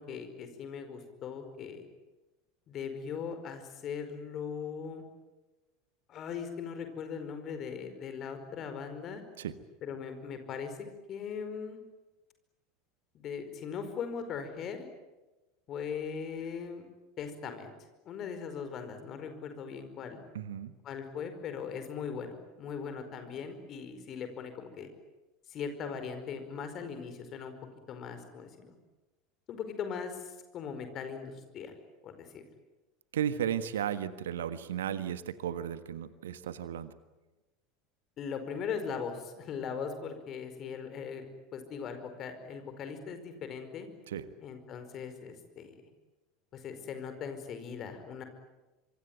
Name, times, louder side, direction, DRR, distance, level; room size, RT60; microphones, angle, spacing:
voice 1, 0.0-1.9 2.7-5.0 6.1-9.2 9.8-11.8 13.1-14.8 15.7-16.9 17.2-17.7 18.0-20.2 20.8-24.9 25.5-27.5 27.9-28.7 29.5-31.7 32.0-32.4 38.2-41.3 41.5-43.9 44.4-45.7 46.5-48.2, left 6 dB, 40° left, 8 dB, 5.0 m, -39 dB
voice 2, 20.3-20.7 33.1-36.9 44.1-44.2, right 9 dB, 65° right, 13 dB, 1.5 m, -34 dB
25.5 x 24.0 x 9.2 m, 1.1 s
figure-of-eight pair, 75°, 0 cm